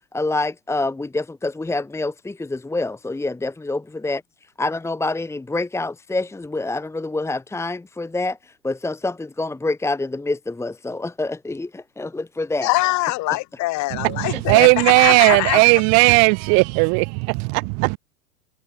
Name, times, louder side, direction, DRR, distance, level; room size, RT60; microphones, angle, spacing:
voice 1, 0.1-4.2 4.6-12.7 14.3-14.6, left 2 dB, 5° left, 1.9 m, -27 dB
voice 2, 12.6-15.6, left 21 dB, 35° left, 6.0 m, -23 dB
voice 3, 14.0-18.0, right 36 dB, 35° right, 1.1 m, -16 dB
figure-of-eight pair, 90°, 46 cm